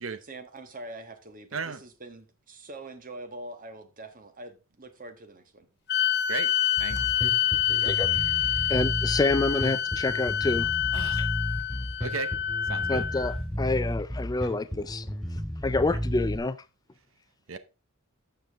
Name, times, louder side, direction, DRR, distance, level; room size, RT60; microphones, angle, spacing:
voice 1, 0.3-5.7 7.1-7.3 7.7-8.0, right 2 dB, 40° right, 1.4 m, -44 dB
sound 1, 5.9-13.4, left 10 dB, 55° left, 0.9 m, -27 dB
Bass guitar, 6.8-16.4, equal, ahead, 2.8 m, -33 dB
voice 2, 6.8-7.1 10.9-11.3 12.0-12.3 12.6-13.1 15.9-16.0 17.5-17.6, right 5 dB, 70° right, 0.8 m, -35 dB
voice 3, 8.4-10.7 11.2-11.3 12.9-15.1 15.6-16.6, left 3 dB, 20° left, 0.4 m, -28 dB
12.0 x 7.2 x 3.5 m
head